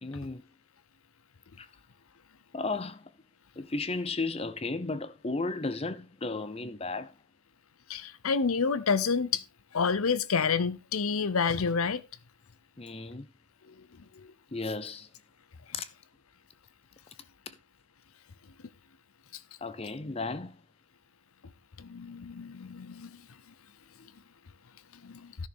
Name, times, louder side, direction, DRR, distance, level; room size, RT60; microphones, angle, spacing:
voice 1, 0.0-0.4 1.6-1.7 2.5-3.1 3.6-7.1 12.8-13.3 14.5-15.1 15.7-15.9 19.6-20.6, left 3 dB, 25° left, 0.7 m, -34 dB
voice 2, 7.9-9.4 9.7-12.0 21.9-23.1 25.1-25.2, left 5 dB, 80° left, 0.7 m, -28 dB
13.5 x 6.5 x 3.6 m
head